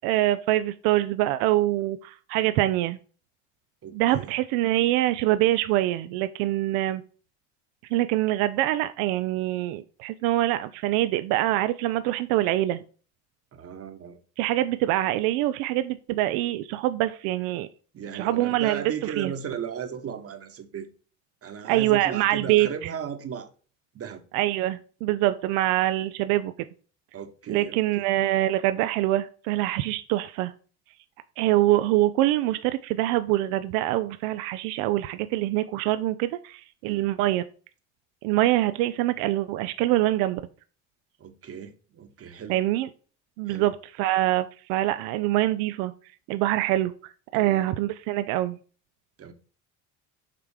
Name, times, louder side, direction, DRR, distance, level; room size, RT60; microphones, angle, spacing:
voice 1, 0.0-3.0 3.9-7.0 7.9-12.8 14.4-17.7 18.1-19.3 21.7-22.9 24.3-26.5 27.5-30.5 31.4-37.4 38.2-40.4 42.5-42.9 43.4-45.9 46.3-48.6, right 15 dB, 80° right, 0.5 m, -24 dB
voice 2, 3.8-4.3 13.5-14.2 17.9-20.9 21.4-23.5 23.9-24.2 27.1-27.8 36.8-37.1 41.2-42.6 43.5-43.7 47.3-47.7 49.2-49.3, right 7 dB, 40° right, 1.1 m, -36 dB
5.7 x 3.5 x 4.8 m
supercardioid pair, 80°, 35 cm